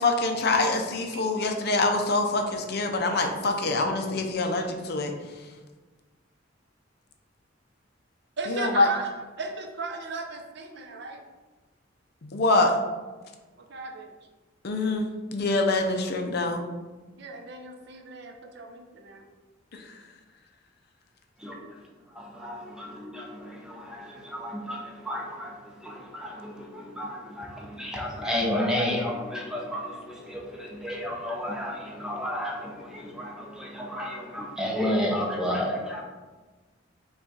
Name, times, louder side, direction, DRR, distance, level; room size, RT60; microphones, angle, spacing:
voice 1, 0.0-5.1 8.5-8.9 12.2-12.7 14.6-16.6 19.7-19.9, left 2 dB, 55° left, 4 dB, 0.5 m, -25 dB
voice 2, 8.4-11.2 13.6-14.1 17.2-19.3 21.6-21.7, right 3 dB, 60° right, 3 dB, 0.6 m, -37 dB
voice 3, 21.4-36.0, left 1 dB, 5° right, -1 dB, 0.7 m, -32 dB
5.5 x 2.3 x 4.0 m, 1.3 s
head